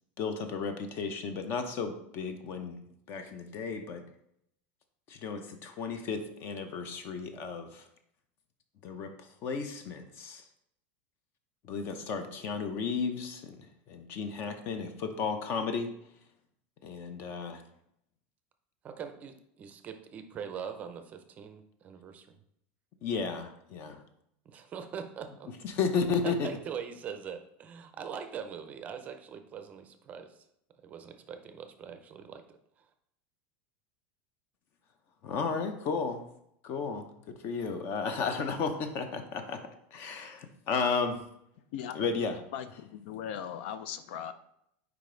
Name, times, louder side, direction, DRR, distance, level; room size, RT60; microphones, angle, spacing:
voice 1, 0.2-2.8 3.1-4.0 5.1-7.9 8.8-9.1 9.4-10.4 11.6-15.9 16.8-17.6 23.0-24.0 25.6-26.5 35.2-36.2 36.6-39.6 39.9-41.2 41.9-42.4, left 5 dB, 40° left, 0.7 m, -33 dB
voice 2, 18.8-22.3 24.5-25.5 26.2-30.4 30.8-32.4, right 7 dB, 25° right, 0.5 m, -42 dB
voice 3, 42.5-44.3, left 9 dB, 70° left, 0.4 m, -38 dB
5.2 x 4.8 x 3.8 m
supercardioid pair, 155°, 6 cm